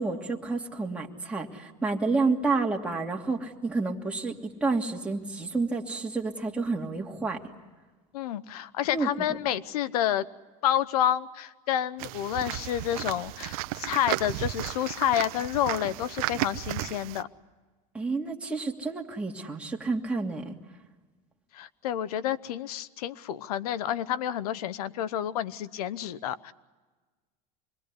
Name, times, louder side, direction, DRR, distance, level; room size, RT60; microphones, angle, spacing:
voice 1, 0.0-7.4 8.9-9.1 17.9-20.6, right 3 dB, 5° right, -1 dB, 2.7 m, -29 dB
voice 2, 8.1-10.3 10.6-17.3 21.5-26.5, left 11 dB, 90° left, 17 dB, 1.0 m, -29 dB
sound 1, 12.0-17.2, right 17 dB, 75° right, 0.9 m, -34 dB
26.5 x 21.5 x 9.6 m, 1.3 s
supercardioid pair, 120°, 19 cm